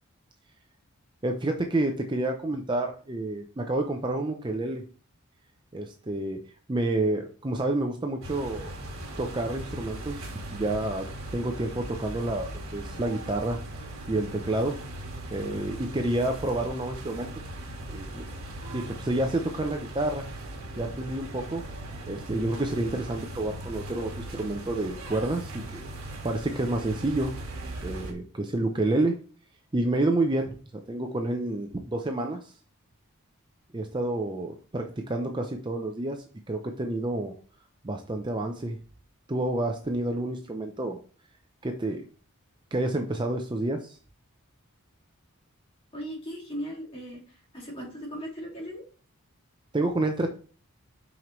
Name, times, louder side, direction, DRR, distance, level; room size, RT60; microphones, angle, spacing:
voice 1, 1.2-4.8 5.7-8.7 9.2-10.2 10.5-13.6 14.1-14.8 15.3-17.3 17.9-18.2 18.7-20.3 20.8-21.6 22.1-26.0 26.2-27.3 27.8-29.2 29.7-32.5 33.7-37.3 37.8-38.8 39.3-41.0 41.6-42.1 42.7-44.0 49.7-50.3, right 2 dB, 20° right, 4 dB, 0.5 m, -29 dB
sound 1, 8.2-28.1, right 1 dB, 65° right, 1.6 m, -39 dB
voice 2, 45.9-47.2 47.5-48.8, equal, 25° left, -2 dB, 2.2 m, -37 dB
6.0 x 5.2 x 3.1 m, 0.39 s
head